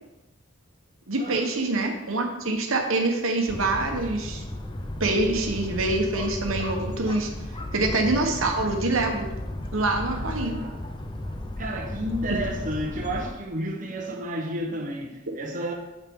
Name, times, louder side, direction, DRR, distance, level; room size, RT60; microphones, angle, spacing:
voice 1, 1.1-4.4 5.0-7.3 7.7-9.3 9.7-10.6 12.3-12.4, right 2 dB, 80° right, 3 dB, 1.2 m, -25 dB
sound 1, 3.5-13.3, left 1 dB, 25° left, 0.6 m, -34 dB
voice 2, 10.1-10.8 11.2-15.7, right 1 dB, 40° right, 1 dB, 1.0 m, -32 dB
8.4 x 6.5 x 3.7 m, 0.98 s
head